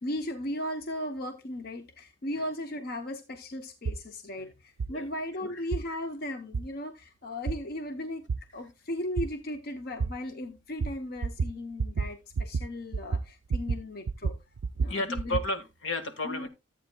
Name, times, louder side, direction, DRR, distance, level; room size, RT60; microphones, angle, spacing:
voice 1, 0.0-8.3 8.5-14.4 14.8-15.4 16.2-16.5, left 1 dB, 50° left, 0.8 m, -36 dB
sound 1, 3.9-4.0 4.8-4.9 5.7-5.8 6.5-6.6 7.5-7.6 8.3-8.4 9.2-9.3 10.0-10.1 10.8-10.9 11.2-11.5 11.8-12.1 12.3-12.7 12.9-13.8 14.1-15.5, right 4 dB, 80° right, 0.4 m, -29 dB
voice 2, 14.9-16.5, left 2 dB, 80° left, 1.6 m, -33 dB
14.0 x 8.3 x 2.2 m
head